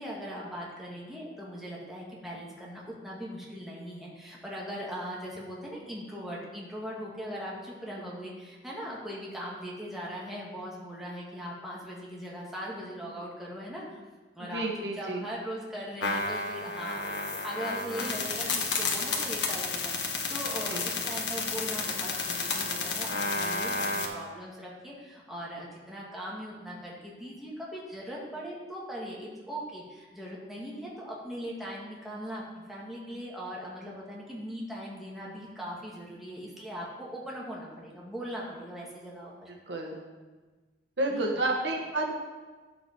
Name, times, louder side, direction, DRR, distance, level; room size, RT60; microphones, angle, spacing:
voice 1, 0.0-14.0 14.3-32.4 32.7-39.5 41.1-41.4, equal, ahead, -5 dB, 1.8 m, -40 dB
voice 2, 14.4-15.2 20.7-20.9 39.7-39.9 41.0-42.1, right 2 dB, 75° right, 1 dB, 1.4 m, -30 dB
sound 1, 16.0-24.1, left 3 dB, 80° left, 1.4 m, -31 dB
9.6 x 7.6 x 4.5 m, 1.3 s
head